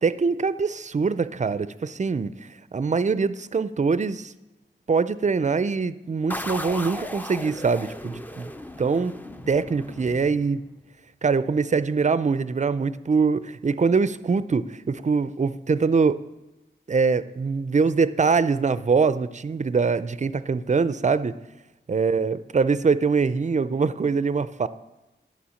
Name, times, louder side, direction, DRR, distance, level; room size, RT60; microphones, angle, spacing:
voice 1, 0.0-4.3 4.9-8.5 8.8-9.1 9.5-10.6 11.2-16.2 16.9-21.4 21.9-24.7, right 5 dB, 40° right, 15 dB, 0.5 m, -23 dB
sound 1, 6.3-10.8, left 1 dB, 10° left, 0.6 m, -36 dB
11.0 x 7.1 x 6.3 m, 1.0 s
wide cardioid pair, 70°, 19 cm